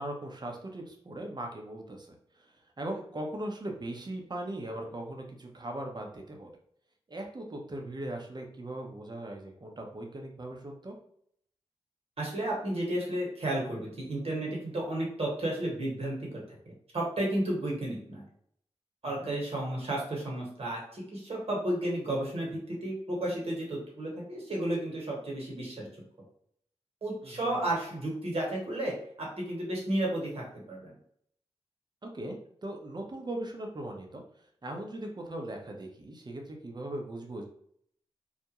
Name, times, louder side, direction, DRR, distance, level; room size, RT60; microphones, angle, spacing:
voice 1, 0.0-6.5 7.1-11.0 19.0-19.3 27.2-27.6 32.0-34.2 34.6-37.4, right 1 dB, 40° right, 2 dB, 0.7 m, -39 dB
voice 2, 12.2-18.2 19.0-25.9 27.0-31.0, right 1 dB, 60° right, -3 dB, 1.2 m, -33 dB
2.4 x 2.1 x 2.8 m, 0.66 s
cardioid pair, 40°, 12 cm